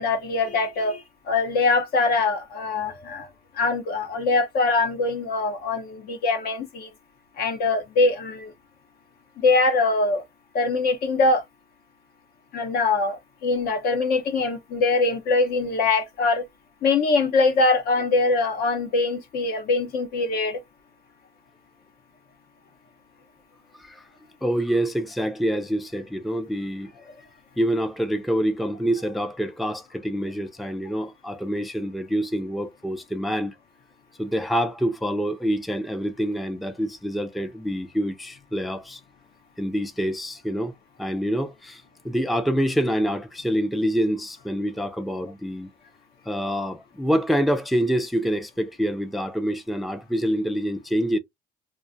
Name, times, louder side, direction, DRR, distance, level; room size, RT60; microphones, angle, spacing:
voice 1, 0.0-3.3 3.6-6.9 7.4-8.5 9.4-10.2 10.5-11.4 12.5-16.4 16.8-20.6, left 3 dB, 65° left, 0.8 m, -23 dB
voice 2, 24.4-26.9 27.6-33.5 34.2-39.0 39.6-40.7 41.0-45.7 46.3-51.2, equal, ahead, 0.4 m, -26 dB
2.4 x 2.3 x 2.6 m
cardioid pair, 110°, 17 cm